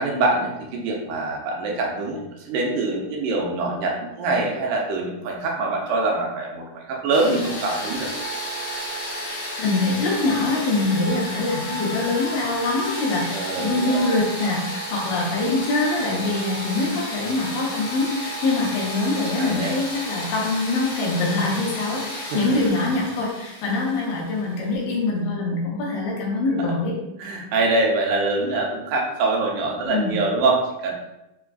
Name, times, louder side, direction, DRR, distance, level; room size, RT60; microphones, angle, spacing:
voice 1, 0.0-8.1 13.3-14.1 19.4-19.8 22.3-22.5 22.8-22.9 26.6-26.8 27.2-30.9, right 2 dB, 80° right, -1 dB, 2.3 m, -24 dB
sound 1, 7.1-24.8, equal, 50° left, 2.7 m, -32 dB
voice 2, 9.6-26.9 29.8-30.2, left 2 dB, 90° left, -3 dB, 2.8 m, -24 dB
6.1 x 3.7 x 2.4 m, 0.91 s
omnidirectional pair, 3.8 m